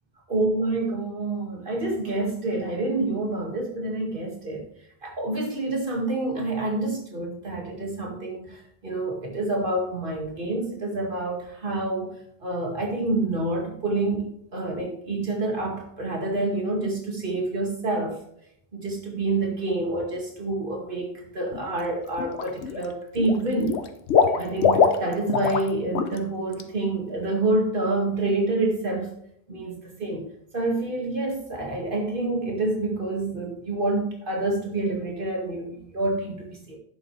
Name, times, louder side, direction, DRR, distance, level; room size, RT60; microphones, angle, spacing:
voice 1, 0.3-4.6 5.0-12.1 12.4-18.2 18.7-23.8 24.4-29.2 29.5-36.8, right 2 dB, 55° right, 0 dB, 2.3 m, -27 dB
Water / Liquid, 21.5-21.8 22.2-22.9 23.1-25.7 25.9-26.2 26.5-26.6, left 6 dB, 80° left, 1.1 m, -22 dB
10.5 x 7.8 x 3.3 m, 0.71 s
omnidirectional pair, 1.1 m